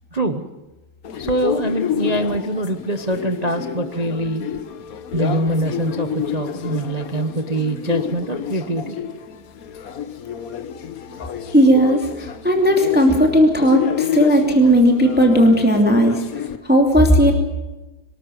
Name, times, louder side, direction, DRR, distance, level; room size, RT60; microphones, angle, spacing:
voice 1, 0.1-0.4 1.2-4.5 5.1-9.0, right 1 dB, 30° right, 8 dB, 0.8 m, -24 dB
sound 1, 1.0-16.6, left 8 dB, 50° left, 1.3 m, -29 dB
voice 2, 11.5-17.3, equal, 5° right, 3 dB, 2.6 m, -15 dB
24.5 x 13.0 x 9.3 m, 1.1 s
omnidirectional pair, 2.2 m